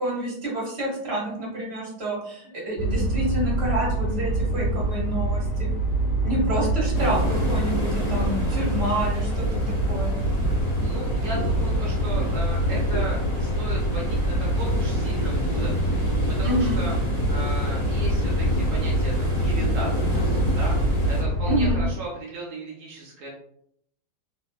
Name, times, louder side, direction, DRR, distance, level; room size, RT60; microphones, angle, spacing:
voice 1, 0.0-5.7 6.2-10.1 16.4-16.8 21.5-21.8, right 1 dB, 40° right, -3 dB, 1.0 m, -28 dB
sound 1, 2.8-21.9, right 1 dB, 70° left, 1.3 m, -25 dB
sound 2, 6.9-21.2, equal, 20° left, 1.4 m, -32 dB
voice 2, 10.8-16.0 16.4-17.0 17.3-20.8 21.0-23.3, right 2 dB, 80° right, -3 dB, 0.7 m, -36 dB
3.0 x 2.7 x 2.2 m, 0.69 s
omnidirectional pair, 2.1 m